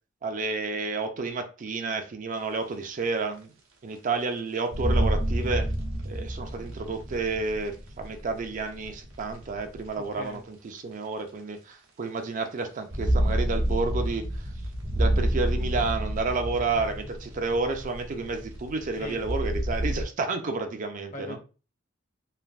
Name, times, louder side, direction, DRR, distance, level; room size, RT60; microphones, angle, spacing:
voice 1, 0.2-3.5 3.8-5.7 6.0-14.2 14.9-21.4, right 3 dB, 40° right, 6 dB, 0.4 m, -30 dB
sound 1, 2.4-2.5 3.2-3.3 3.9-4.0 4.7-9.9 10.8-10.9 12.7-20.0, right 1 dB, 85° right, 0.9 m, -29 dB
voice 2, 10.0-10.4 19.0-19.3 21.1-21.4, left 1 dB, 40° left, 4 dB, 0.7 m, -40 dB
3.2 x 2.5 x 2.3 m, 0.33 s
head